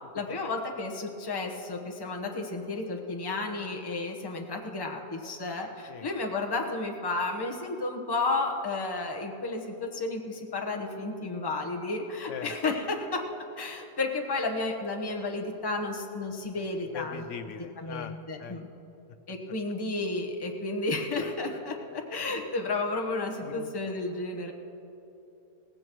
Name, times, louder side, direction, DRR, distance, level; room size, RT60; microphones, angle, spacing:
voice 1, 0.1-13.2 13.6-17.2 17.8-18.6 19.3-24.5, left 3 dB, 20° left, 1 dB, 1.0 m, -32 dB
voice 2, 16.9-18.6 23.4-23.7, left 7 dB, 60° left, 9 dB, 1.0 m, -40 dB
18.0 x 16.0 x 3.1 m, 3.0 s
omnidirectional pair, 1.6 m